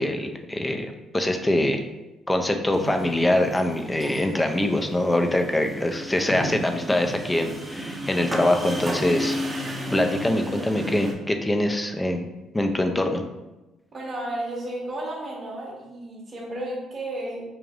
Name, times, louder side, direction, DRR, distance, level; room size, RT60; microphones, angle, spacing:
voice 1, 0.0-1.8 2.3-9.4 9.9-12.3 12.5-13.2, left 1 dB, 15° left, 5 dB, 0.4 m, -24 dB
sound 1, 2.7-11.1, right 1 dB, 20° right, 0.8 m, -33 dB
voice 2, 13.9-17.4, right 1 dB, 40° right, -3 dB, 1.1 m, -33 dB
3.3 x 2.5 x 3.6 m, 1.0 s
supercardioid pair, 75°, 0 cm